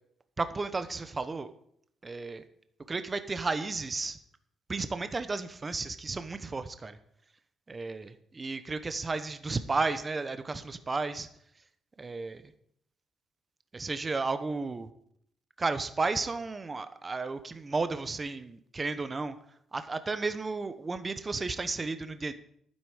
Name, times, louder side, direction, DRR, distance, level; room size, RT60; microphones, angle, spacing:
voice 1, 0.4-1.5 2.0-2.4 2.9-4.2 4.7-7.0 7.7-11.3 12.0-12.4 13.7-14.9 15.6-19.3 19.7-22.3, right 3 dB, 25° right, 10 dB, 0.8 m, -33 dB
11.5 x 9.7 x 4.9 m, 0.69 s
cardioid pair, 105°, 0 cm